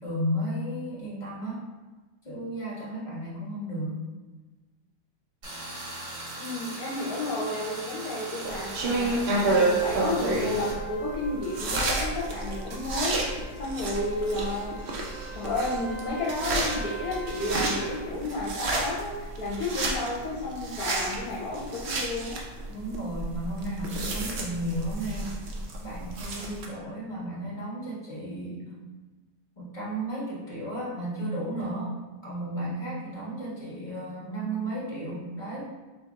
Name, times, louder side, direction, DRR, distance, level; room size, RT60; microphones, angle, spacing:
voice 1, 0.0-1.6 2.2-4.0 22.7-25.4 25.8-28.8 29.6-31.9 32.2-35.7, right 1 dB, 30° left, -6 dB, 1.3 m, -33 dB
Tools, 5.4-10.7, right 1 dB, 80° right, 2.1 m, -39 dB
voice 2, 6.4-9.2 9.6-14.9 15.3-22.4, left 2 dB, 70° left, -5 dB, 1.2 m, -32 dB
sound 1, 8.4-26.7, right 2 dB, 60° right, 0.7 m, -30 dB
Trumpet, 10.2-18.0, right 2 dB, 50° left, 1.3 m, -44 dB
4.5 x 2.7 x 3.5 m, 1.2 s
omnidirectional pair, 1.7 m